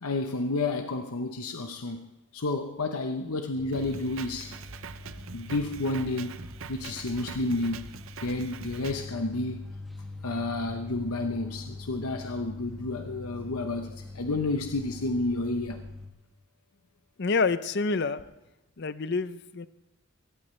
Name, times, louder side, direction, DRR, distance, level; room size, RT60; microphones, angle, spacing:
voice 1, 0.0-4.5 5.3-6.4 6.7-7.8 8.2-9.7 10.2-15.8, left 2 dB, 80° left, 6 dB, 0.9 m, -31 dB
sound 1, 3.5-16.1, left 2 dB, ahead, 1.8 m, -43 dB
Drum kit, 3.7-9.1, right 6 dB, 65° right, 0.6 m, -43 dB
voice 2, 17.2-18.2 18.8-19.7, left 4 dB, 50° left, 14 dB, 0.6 m, -28 dB
22.5 x 17.5 x 3.2 m, 0.93 s
head